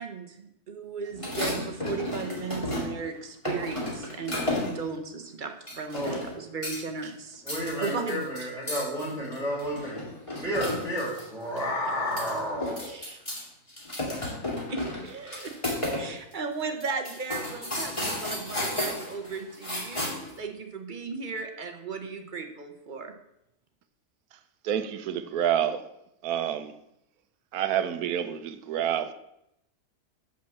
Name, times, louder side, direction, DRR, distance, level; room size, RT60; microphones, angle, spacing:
voice 1, 0.0-7.4 7.8-8.5 12.9-13.2 14.7-15.5 16.0-23.1, right 5 dB, 40° right, 1.0 m, -36 dB
sound 1, 1.1-3.1 3.4-4.9 5.7-6.3 6.6-7.0 7.3-11.2 11.6-11.7 12.0-13.4 13.7-16.0 16.3-16.4 16.8-20.4, left 1 dB, 20° left, 2.4 m, -33 dB
voice 2, 7.4-10.1 10.4-12.9, equal, ahead, 2.6 m, -31 dB
voice 3, 24.6-25.8 26.2-26.7 27.5-29.1, right 10 dB, 80° right, 1.2 m, -28 dB
7.3 x 5.2 x 7.1 m
omnidirectional pair, 1.6 m